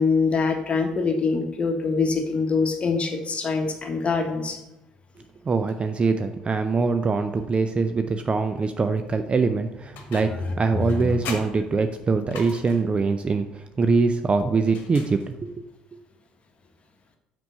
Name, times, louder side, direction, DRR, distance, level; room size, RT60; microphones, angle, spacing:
voice 1, 0.0-4.6 10.9-11.1, left 4 dB, 35° left, 3 dB, 1.4 m, -24 dB
voice 2, 5.5-15.5, right 4 dB, 30° right, 8 dB, 0.5 m, -23 dB
sound 1, 9.9-10.5 10.9-13.0 14.6-15.6, left 5 dB, 65° left, 1.3 m, -40 dB
5.9 x 5.2 x 5.6 m, 0.92 s
hypercardioid pair, 55°, 4 cm